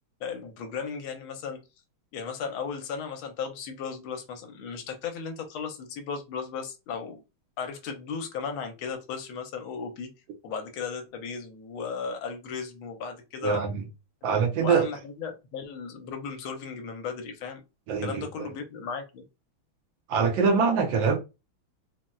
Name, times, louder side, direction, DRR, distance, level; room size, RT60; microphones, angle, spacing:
voice 1, 0.2-1.6 2.1-7.2 7.6-10.1 10.4-13.6 14.4-17.6 18.0-19.2, left 6 dB, 80° left, 1.4 m, -35 dB
voice 2, 13.4-13.8 14.2-14.9 17.9-18.5 20.1-21.2, right 5 dB, 70° right, 1.3 m, -24 dB
4.1 x 2.0 x 2.2 m
omnidirectional pair, 2.3 m